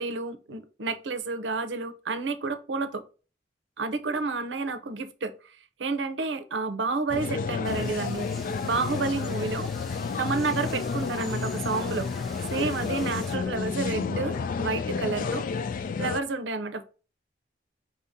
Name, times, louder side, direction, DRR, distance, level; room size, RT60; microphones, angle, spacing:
voice 1, 0.0-3.0 3.8-5.5 5.8-8.3 8.6-9.7 10.2-15.4 16.0-16.8, right 3 dB, 80° right, 0.6 m, -30 dB
sound 1, 7.1-16.2, left 5 dB, 50° left, 0.3 m, -31 dB
sound 2, 7.6-13.4, equal, ahead, 0.5 m, -46 dB
5.4 x 2.7 x 3.5 m
head